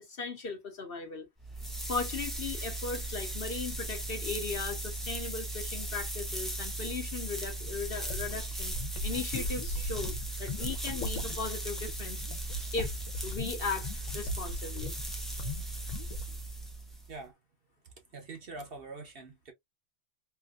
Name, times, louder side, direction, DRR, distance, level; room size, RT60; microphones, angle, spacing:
voice 1, 0.1-1.3 1.9-8.8 9.0-10.1 10.4-12.2 12.7-13.0 13.2-13.9 14.1-14.9, left 4 dB, 50° left, 0.9 m, -37 dB
sound 1, 1.4-17.1, right 1 dB, ahead, 0.4 m, -37 dB
sound 2, 7.6-15.1 15.4-15.6 15.9-16.4, left 1 dB, 75° left, 1.2 m, -38 dB
voice 2, 17.8-19.5, right 3 dB, 50° right, 0.9 m, -45 dB
3.2 x 2.5 x 2.3 m
omnidirectional pair, 1.3 m